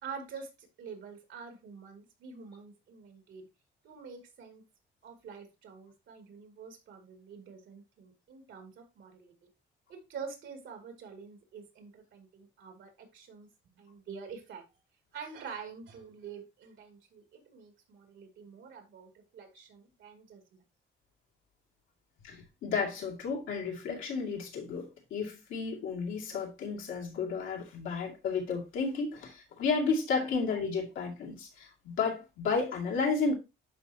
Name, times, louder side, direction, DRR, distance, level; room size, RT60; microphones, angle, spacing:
voice 1, 0.0-3.5 3.8-4.6 5.0-9.5 9.9-13.5 13.7-14.6 15.1-20.6, right 6 dB, 75° right, 2.5 m, -47 dB
voice 2, 22.2-33.3, left 4 dB, 85° left, 2.3 m, -32 dB
11.0 x 4.5 x 2.8 m
cardioid pair, 90°, 20 cm